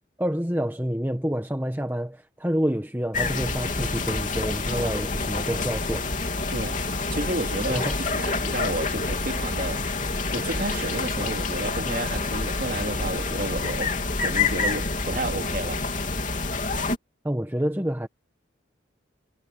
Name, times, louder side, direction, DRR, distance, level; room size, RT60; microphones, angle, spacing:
voice 1, 0.2-6.1 7.7-8.0 17.2-18.1, equal, 10° right, 1.3 m, -28 dB
sound 1, 3.1-17.0, left 3 dB, 40° left, 3.4 m, -27 dB
voice 2, 4.7-5.0 6.5-9.8 10.3-14.0 14.2-15.8, right 2 dB, 45° right, 3.6 m, -32 dB
head